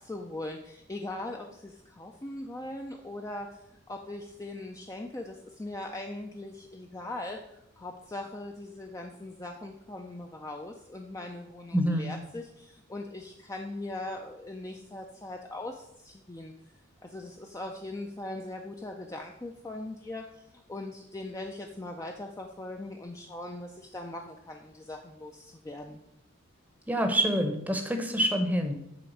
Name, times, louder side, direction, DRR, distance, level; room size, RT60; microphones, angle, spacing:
voice 1, 0.0-3.6 3.9-16.5 17.0-26.0, left 2 dB, 15° left, 2 dB, 0.4 m, -40 dB
voice 2, 11.7-12.1 26.9-28.7, equal, 5° right, 5 dB, 0.7 m, -26 dB
7.8 x 3.4 x 6.4 m, 0.79 s
head